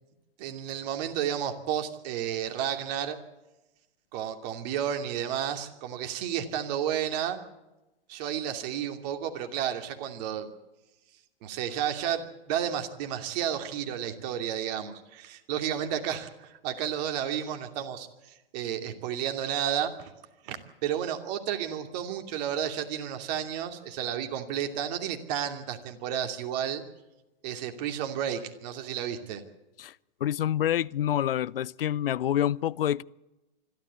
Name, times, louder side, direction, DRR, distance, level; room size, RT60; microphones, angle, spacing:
voice 1, 0.4-3.2 4.1-7.4 8.1-10.5 11.4-18.1 18.5-20.1 20.4-26.8 27.4-29.4, right 9 dB, 45° right, 2.7 m, -32 dB
voice 2, 30.2-33.0, left 11 dB, 70° left, 0.6 m, -27 dB
25.5 x 13.0 x 8.3 m
hypercardioid pair, 115°, 29 cm